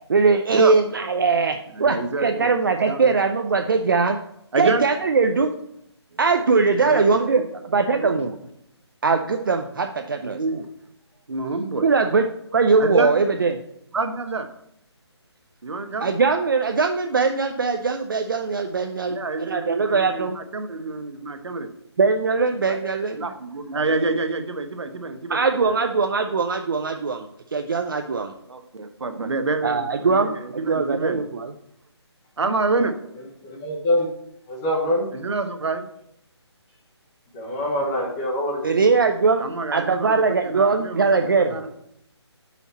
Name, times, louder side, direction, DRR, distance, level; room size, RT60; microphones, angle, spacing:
voice 1, 0.1-4.2 4.6-5.5 6.2-8.3 9.0-10.4 11.8-12.3 12.5-13.6 16.0-20.4 22.0-23.2 25.3-27.3 27.5-28.3 29.6-30.4 30.7-31.5 38.6-39.4 39.7-41.6, right 4 dB, 50° right, 5 dB, 0.5 m, -21 dB
voice 2, 1.7-2.5 2.9-3.2 4.5-4.9 6.8-7.5 7.7-8.2 10.2-10.7 11.3-11.9 12.8-13.1 13.9-14.5 15.6-16.1 19.1-21.7 22.6-25.8 28.5-31.2 32.4-32.9 35.1-35.9 39.4-41.1 41.5-41.7, right 3 dB, 75° right, 7 dB, 1.0 m, -27 dB
voice 3, 33.4-34.1 34.5-35.1 37.3-38.8, left 1 dB, 10° left, -1 dB, 0.9 m, -24 dB
7.0 x 5.7 x 4.1 m, 0.75 s
hypercardioid pair, 170°, 15 cm